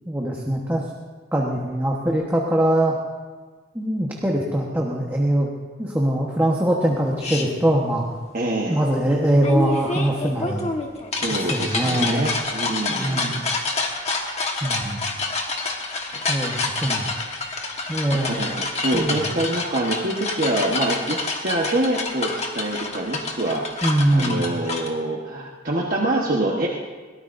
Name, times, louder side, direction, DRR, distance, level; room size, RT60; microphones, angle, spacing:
voice 1, 0.1-0.8 1.3-2.9 3.7-5.5 5.8-8.1 8.7-10.7 11.5-12.3 12.9-13.4 14.6-15.1 16.3-17.1 17.9-18.4 18.9-19.3 23.8-24.5, right 1 dB, 10° right, -2 dB, 1.2 m, -22 dB
sound 1, 7.2-7.4 9.4-24.9, left 3 dB, 35° left, 1.4 m, -28 dB
voice 2, 8.3-8.8 11.1-13.5 18.1-23.8 24.1-26.7, right 1 dB, 45° right, -2 dB, 1.2 m, -25 dB
22.0 x 18.0 x 2.6 m, 1.4 s
head